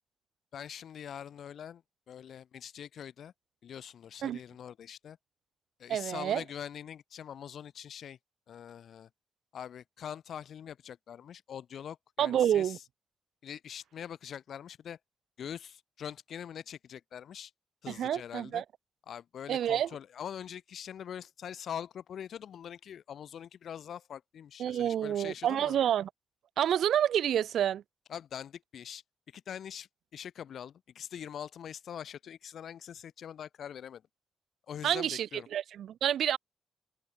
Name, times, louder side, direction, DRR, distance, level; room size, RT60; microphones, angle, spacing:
voice 1, 0.5-3.3 3.6-5.2 5.8-8.2 8.5-9.1 9.5-12.8 13.4-15.0 15.4-17.5 17.8-18.6 19.1-25.8 28.1-29.0 29.3-34.0 34.7-35.5, left 9 dB, 70° left, 1.0 m, -43 dB
voice 2, 5.9-6.4 12.2-12.8 17.9-18.6 19.5-19.9 24.6-26.1 26.6-27.8 34.8-36.4, right 10 dB, 80° right, 0.8 m, -28 dB
open air
cardioid pair, 110°, 0 cm